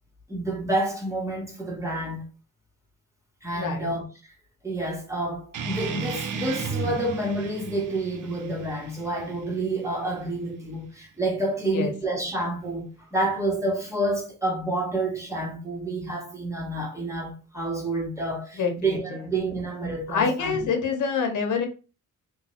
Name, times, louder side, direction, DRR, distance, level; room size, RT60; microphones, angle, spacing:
voice 1, 0.3-2.2 3.4-4.0 4.6-20.6, right 2 dB, 10° right, 1.1 m, -29 dB
voice 2, 3.5-3.9 11.7-11.9 18.5-19.0 20.1-21.7, left 5 dB, 65° left, 1.0 m, -26 dB
sound 1, 5.5-10.6, right 6 dB, 70° right, 0.7 m, -35 dB
3.7 x 2.4 x 4.2 m
wide cardioid pair, 180°, 32 cm